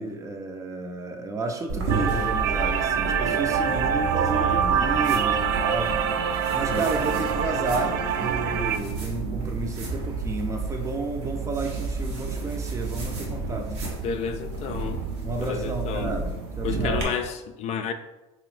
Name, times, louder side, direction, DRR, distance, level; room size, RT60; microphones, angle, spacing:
voice 1, 0.0-6.0 6.5-13.7 15.2-17.1, right 3 dB, 20° right, 4 dB, 0.5 m, -32 dB
sound 1, 1.7-17.0, right 3 dB, 85° right, 1.0 m, -31 dB
sound 2, 1.9-8.8, right 7 dB, 70° right, 0.4 m, -25 dB
voice 2, 4.3-4.7 14.0-15.0 15.4-16.1 16.6-17.9, left 6 dB, 50° left, 7 dB, 0.4 m, -31 dB
3.3 x 3.0 x 3.2 m, 1.0 s
supercardioid pair, 100°, 15 cm